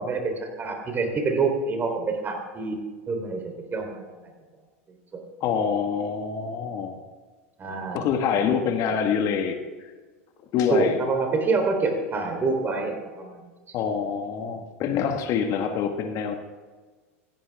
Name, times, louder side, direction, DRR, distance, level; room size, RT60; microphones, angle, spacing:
voice 1, 0.0-2.8 3.1-4.1 5.1-5.2 7.6-8.1 8.3-8.5 10.7-13.4, right 4 dB, 25° right, 3 dB, 3.5 m, -26 dB
voice 2, 5.4-7.0 7.9-9.9 10.5-11.0 13.7-16.4, left 7 dB, 45° left, 6 dB, 1.5 m, -26 dB
16.0 x 15.0 x 3.6 m, 1.4 s
hypercardioid pair, 105°, 8 cm